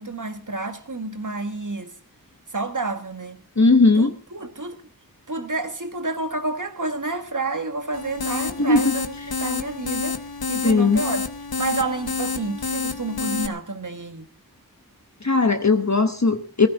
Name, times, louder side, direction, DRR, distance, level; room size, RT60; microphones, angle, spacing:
voice 1, 0.0-1.9 2.5-3.4 4.0-4.8 5.3-9.1 9.4-10.2 10.5-11.2 11.6-14.3, right 3 dB, 55° right, 1.7 m, -29 dB
voice 2, 3.6-4.1 8.6-8.9 10.6-11.0 15.2-16.7, left 3 dB, 45° left, 1.1 m, -18 dB
sound 1, 7.9-13.5, left 4 dB, 75° left, 0.9 m, -29 dB
17.5 x 14.5 x 4.0 m
wide cardioid pair, 50°, 37 cm